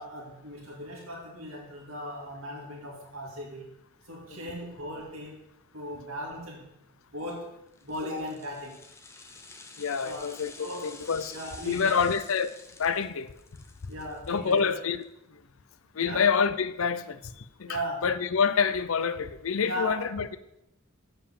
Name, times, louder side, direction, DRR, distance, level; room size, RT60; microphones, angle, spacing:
voice 1, 0.0-3.7 4.0-5.4 5.7-6.7 7.1-8.8 10.0-10.3 10.6-10.9 11.3-12.0 13.9-14.6 16.0-16.3 17.6-18.1 19.6-20.0, equal, 85° right, 2.0 m, -37 dB
sound 1, 7.7-15.0 15.4-15.5, left 3 dB, 15° left, 0.6 m, -50 dB
voice 2, 9.8-10.5 10.8-11.4 11.6-12.5 12.8-13.3 14.3-15.0 16.0-17.2 17.6-20.4, left 6 dB, 80° left, 0.6 m, -27 dB
7.0 x 5.3 x 7.3 m
head